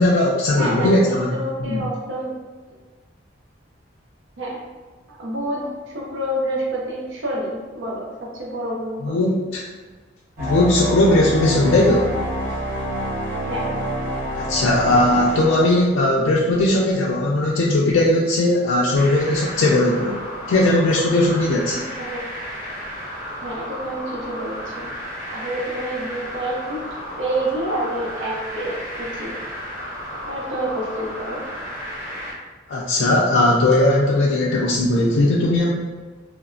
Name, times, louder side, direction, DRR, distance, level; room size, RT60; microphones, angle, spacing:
voice 1, 0.0-1.3 1.6-1.8 9.0-9.6 10.4-12.1 14.3-20.2 20.5-21.8 32.7-35.7, left 1 dB, 85° left, -4 dB, 0.3 m, -18 dB
voice 2, 0.6-2.3 2.7-2.8 4.4-4.6 5.1-9.2 13.5-13.8 21.7-22.2 23.4-24.9 25.3-26.8 27.2-29.4 30.3-31.4, right 1 dB, 75° right, -3 dB, 0.5 m, -28 dB
sound 1, 10.4-16.2, equal, 40° right, 1.0 m, -27 dB
sound 2, 19.0-32.3, equal, 10° right, 0.6 m, -33 dB
3.1 x 2.0 x 2.5 m, 1.4 s
head